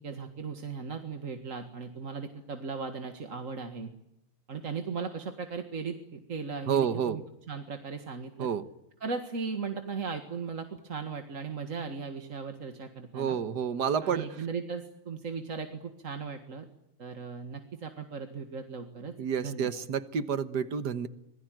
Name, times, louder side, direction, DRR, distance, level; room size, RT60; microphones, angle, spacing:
voice 1, 0.0-3.9 4.5-7.2 7.5-8.5 9.0-13.4 14.0-16.7 17.0-19.1 19.4-19.7, right 5 dB, 40° right, 5 dB, 2.0 m, -37 dB
voice 2, 6.7-7.2 8.4-8.6 13.1-14.3 19.2-21.1, right 7 dB, 55° right, 12 dB, 1.6 m, -29 dB
26.5 x 21.0 x 9.2 m, 0.81 s
omnidirectional pair, 2.4 m